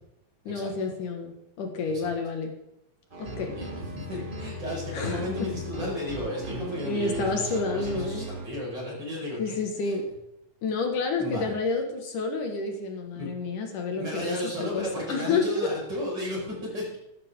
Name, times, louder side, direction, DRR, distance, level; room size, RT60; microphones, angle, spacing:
voice 1, 0.5-2.5 3.2-3.6 4.9-5.5 6.8-8.3 9.4-10.0 10.6-15.7, left 4 dB, 75° left, 4 dB, 3.2 m, -29 dB
sound 1, 3.1-8.5, right 1 dB, 75° right, 0.4 m, -37 dB
voice 2, 3.5-9.6 9.8-9.9 11.2-11.5 13.1-13.3 13.9-17.0, left 1 dB, 30° right, -4 dB, 6.1 m, -33 dB
14.0 x 13.5 x 3.7 m, 0.84 s
omnidirectional pair, 3.7 m